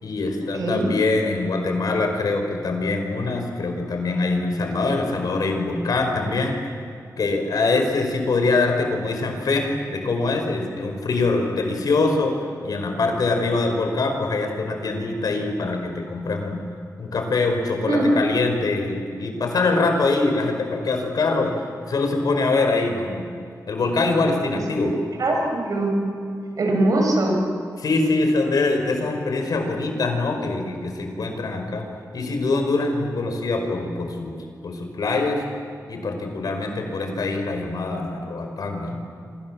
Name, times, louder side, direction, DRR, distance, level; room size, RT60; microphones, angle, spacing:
voice 1, 0.0-6.6 7.2-12.3 12.6-16.6 17.0-21.6 21.9-23.3 23.7-24.9 27.8-31.9 32.1-34.4 34.6-35.4 35.9-39.0, left 3 dB, 80° left, 4 dB, 5.1 m, -23 dB
voice 2, 25.2-26.0 26.6-27.4, right 2 dB, 65° right, 1 dB, 6.8 m, -21 dB
29.5 x 26.0 x 7.5 m, 2.4 s
wide cardioid pair, 165°, 6 cm